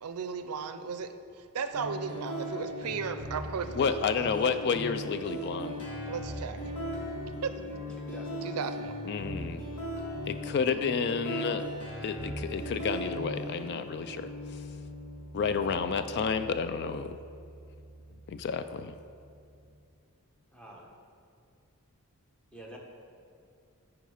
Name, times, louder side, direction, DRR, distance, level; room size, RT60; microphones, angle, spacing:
voice 1, 0.0-4.3 6.1-6.6 7.4-7.5 8.4-8.9, right 6 dB, 85° right, 10 dB, 0.5 m, -35 dB
sound 1, 1.7-19.7, equal, 90° left, 1.9 m, -39 dB
voice 2, 3.8-5.9 9.1-9.6 10.3-11.6 12.0-14.3 15.3-17.2 18.3-18.9, left 5 dB, 50° left, 11 dB, 0.3 m, -30 dB
voice 3, 8.0-8.5 20.5-20.9 22.5-22.8, equal, 5° left, -2 dB, 1.0 m, -47 dB
9.4 x 4.7 x 4.9 m, 2.4 s
head